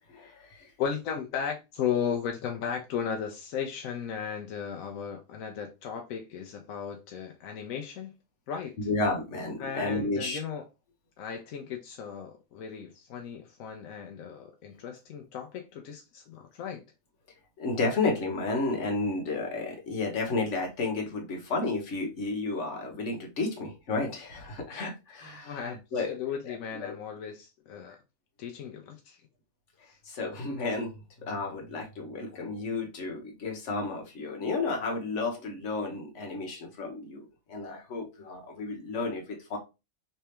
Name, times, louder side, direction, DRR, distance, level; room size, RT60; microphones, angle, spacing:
voice 1, 0.1-0.7 8.8-10.4 17.6-26.1 26.4-27.0 30.0-30.9 31.2-39.6, left 3 dB, 65° left, 1.4 m, -32 dB
voice 2, 0.8-8.1 8.5-8.8 9.6-10.6 11.2-16.8 25.4-28.0 28.4-29.2 29.9-30.0, left 7 dB, 85° left, 1.0 m, -36 dB
3.3 x 3.3 x 2.8 m
omnidirectional pair, 1.4 m